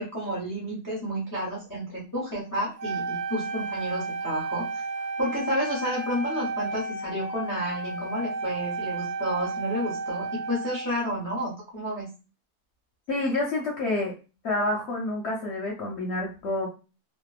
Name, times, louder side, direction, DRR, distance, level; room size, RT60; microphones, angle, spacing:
voice 1, 0.0-4.8 5.2-12.1, equal, 35° left, -4 dB, 0.3 m, -31 dB
Wind instrument woodwind instrument, 2.8-11.1, right 3 dB, 80° right, 1.2 m, -33 dB
voice 2, 13.1-14.1 14.4-16.7, left 2 dB, 65° left, -2 dB, 0.7 m, -28 dB
2.8 x 2.0 x 2.3 m, 0.32 s
omnidirectional pair, 1.7 m